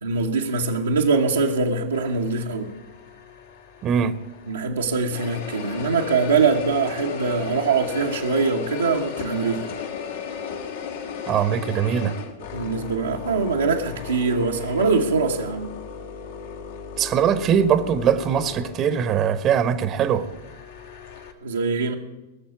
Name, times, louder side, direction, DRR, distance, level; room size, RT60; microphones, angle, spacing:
voice 1, 0.0-2.7 4.5-9.6 12.5-15.7 21.4-21.9, right 4 dB, 90° right, 1.2 m, -23 dB
sound 1, 1.9-4.7 5.1-21.3, left 6 dB, 70° left, 2.1 m, -36 dB
voice 2, 3.8-4.1 11.3-12.1 17.0-20.3, right 8 dB, 35° right, 0.9 m, -21 dB
18.5 x 7.0 x 8.4 m
hypercardioid pair, 105°, 0 cm